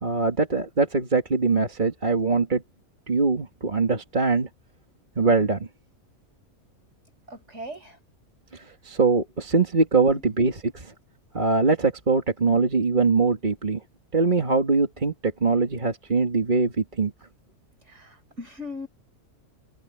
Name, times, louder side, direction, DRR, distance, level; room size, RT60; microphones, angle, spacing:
voice 1, 0.0-2.6 3.1-4.5 5.2-5.7 8.5-10.9 11.3-13.8 14.1-17.1, right 4 dB, 35° right, 2.1 m, -22 dB
voice 2, 7.3-8.0 10.1-10.2 17.9-18.9, left 2 dB, 50° right, 5.8 m, -39 dB
omnidirectional pair, 1.5 m